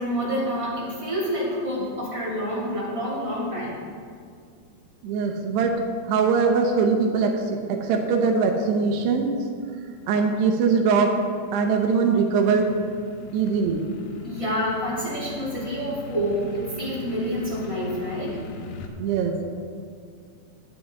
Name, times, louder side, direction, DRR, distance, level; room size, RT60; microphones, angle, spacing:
voice 1, 0.0-3.8 13.3-13.4 14.2-18.4, equal, 10° right, -8 dB, 1.8 m, -28 dB
voice 2, 5.0-9.3 10.1-12.7 13.3-13.8 19.0-19.5, right 5 dB, 85° right, 2 dB, 2.9 m, -22 dB
sound 1, 11.1-18.9, left 2 dB, 85° left, 2.7 m, -40 dB
12.5 x 8.0 x 3.7 m, 2.2 s
omnidirectional pair, 4.7 m